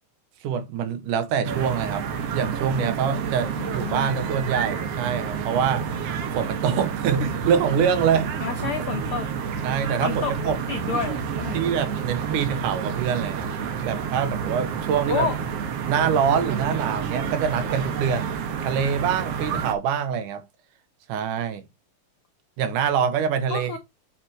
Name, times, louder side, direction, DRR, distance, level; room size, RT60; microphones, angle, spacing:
voice 1, 0.4-2.0 2.3-5.9 6.4-8.3 9.6-10.6 11.5-13.5 13.8-15.3 15.8-18.3 18.6-20.4 21.1-21.6 22.6-23.8, right 7 dB, 75° right, 2.5 m, -25 dB
sound 1, 1.4-19.7, right 7 dB, 60° right, 1.9 m, -29 dB
voice 2, 3.6-4.2 8.4-9.3 10.0-11.7 15.1-15.4 23.5-23.8, left 6 dB, 85° left, 1.2 m, -30 dB
8.0 x 4.5 x 4.5 m
omnidirectional pair, 3.8 m